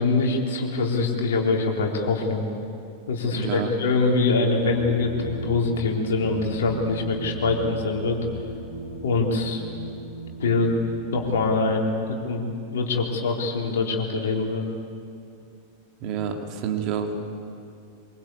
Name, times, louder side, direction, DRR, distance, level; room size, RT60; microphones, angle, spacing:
voice 1, 0.0-2.4 3.1-8.2 9.0-9.6 10.4-10.7 11.1-14.7, left 3 dB, 60° left, 0 dB, 3.8 m, -24 dB
voice 2, 3.3-3.7 16.0-17.1, right 8 dB, 40° right, 3 dB, 2.7 m, -28 dB
sound 1, 4.6-11.7, right 2 dB, 80° right, 4.5 m, -36 dB
24.0 x 23.5 x 8.5 m, 2.5 s
figure-of-eight pair, 90°, 0 cm